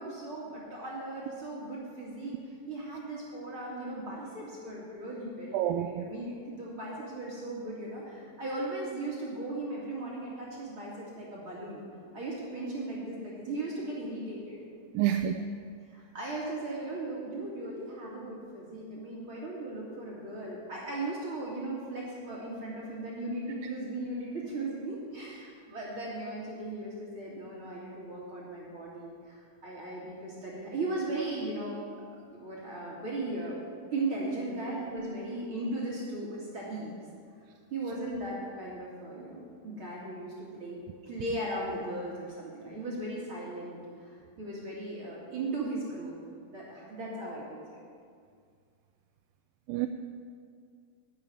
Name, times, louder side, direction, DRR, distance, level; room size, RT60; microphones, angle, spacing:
voice 1, 0.0-11.8 12.1-14.6 15.9-31.8 32.3-33.6 33.9-36.9 37.7-46.1 46.5-47.8, right 2 dB, 40° right, -5 dB, 2.5 m, -37 dB
voice 2, 5.5-6.1 14.9-15.4 49.7-49.9, right 11 dB, 80° right, 7 dB, 2.2 m, -28 dB
11.0 x 7.4 x 9.6 m, 2.2 s
omnidirectional pair, 4.3 m